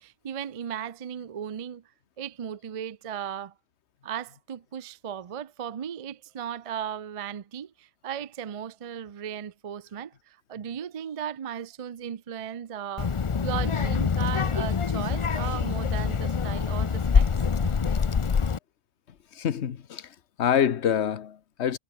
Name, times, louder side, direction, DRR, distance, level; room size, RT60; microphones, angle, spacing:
voice 1, 0.0-1.8 2.2-3.5 4.0-17.3 17.6-17.7, right 9 dB, 50° right, 0.4 m, -36 dB
Child speech kid speaking, 13.0-18.6, left 6 dB, 35° left, 0.5 m, -25 dB
voice 2, 19.3-21.8, left 8 dB, 60° left, 1.3 m, -26 dB
omnidirectional pair, 1.3 m